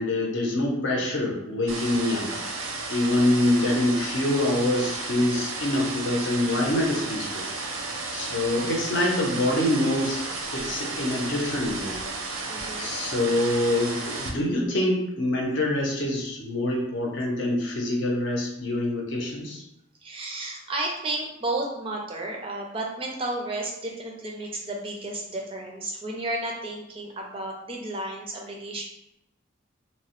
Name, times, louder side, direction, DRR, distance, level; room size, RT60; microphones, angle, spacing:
voice 1, 0.0-2.3 2.9-7.5 7.8-7.9 8.1-10.2 10.5-12.0 12.8-19.6, left 1 dB, 60° left, -1 dB, 0.6 m, -25 dB
sound 1, 1.7-14.3, right 3 dB, 85° right, 0.5 m, -33 dB
voice 2, 12.5-13.0 20.0-28.8, right 2 dB, 25° right, 0 dB, 0.4 m, -32 dB
2.9 x 2.0 x 2.9 m, 0.85 s
head